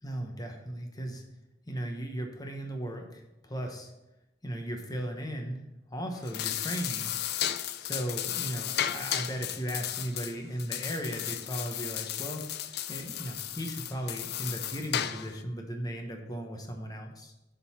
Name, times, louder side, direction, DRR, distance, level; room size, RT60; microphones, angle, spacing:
voice 1, 0.0-1.2 1.7-3.9 4.4-5.6 5.9-7.1 7.8-12.4 12.9-17.3, right 1 dB, 20° left, 3 dB, 0.9 m, -36 dB
sound 1, 6.1-15.4, left 11 dB, 55° left, 0.4 m, -34 dB
7.0 x 3.9 x 6.0 m, 0.95 s
head